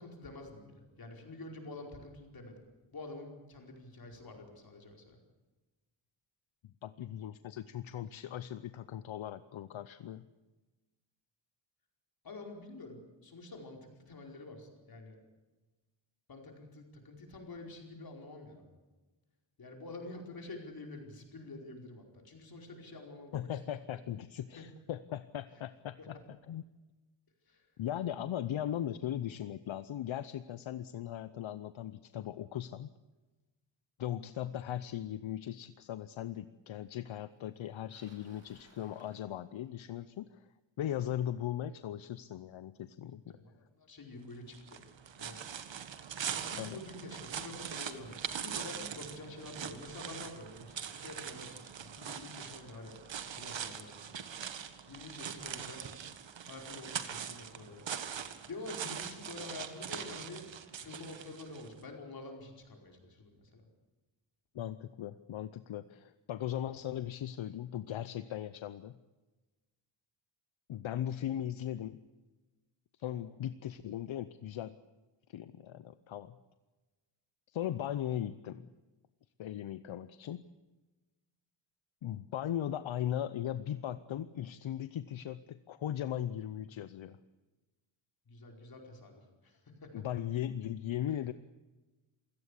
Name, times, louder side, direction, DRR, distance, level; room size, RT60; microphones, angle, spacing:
voice 1, 0.0-2.6 2.9-5.2 12.2-15.2 16.3-18.7 19.6-23.5 24.6-24.7 26.0-26.1 27.5-27.7 43.3-44.8 45.2-45.5 46.4-54.2 54.9-55.8 56.5-57.9 58.2-60.5 60.8-63.6 73.0-73.2 88.3-90.0, left 2 dB, 50° left, 2 dB, 4.9 m, -48 dB
voice 2, 6.8-10.2 23.3-26.6 27.8-32.9 34.0-40.5 40.8-43.4 46.6-46.8 64.5-69.0 70.7-72.0 73.0-74.8 75.3-76.3 77.5-78.7 79.4-80.4 82.0-87.2 89.9-91.3, left 11 dB, 75° left, 14 dB, 0.8 m, -38 dB
Bicycle, 37.5-39.9 44.9-45.0 45.9-46.0 47.0-47.1 47.3-48.7, right 2 dB, 30° right, 6.0 m, -64 dB
sound 1, 44.5-61.7, right 8 dB, 70° right, 1.8 m, -42 dB
27.5 x 17.0 x 8.4 m, 1.2 s
wide cardioid pair, 165°, 47 cm